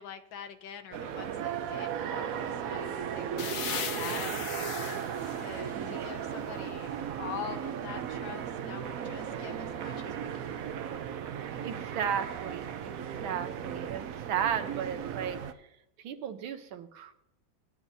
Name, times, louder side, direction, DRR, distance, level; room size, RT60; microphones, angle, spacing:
voice 1, 0.0-11.0, left 8 dB, 75° left, 7 dB, 1.5 m, -45 dB
sound 1, 0.9-15.5, right 8 dB, 65° right, 0.8 m, -36 dB
sound 2, 3.4-7.0, left 7 dB, 55° left, 1.0 m, -39 dB
voice 2, 5.7-6.1 11.6-12.9 13.2-15.7 16.0-17.1, right 8 dB, 90° right, 7 dB, 1.8 m, -35 dB
26.5 x 9.2 x 2.7 m, 0.81 s
omnidirectional pair, 2.1 m